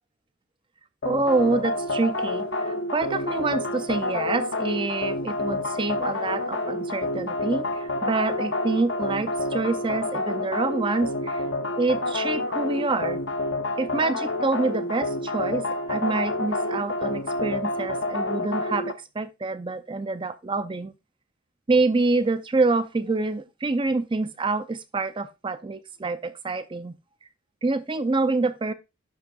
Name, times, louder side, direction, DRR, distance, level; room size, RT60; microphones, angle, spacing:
sound 1, 1.0-18.9, left 2 dB, 60° left, 0.9 m, -28 dB
voice 1, 1.0-11.4 11.8-13.2 13.8-20.9 21.7-26.9 27.6-28.7, right 3 dB, 25° right, 0.4 m, -26 dB
11.5 x 5.3 x 2.3 m
head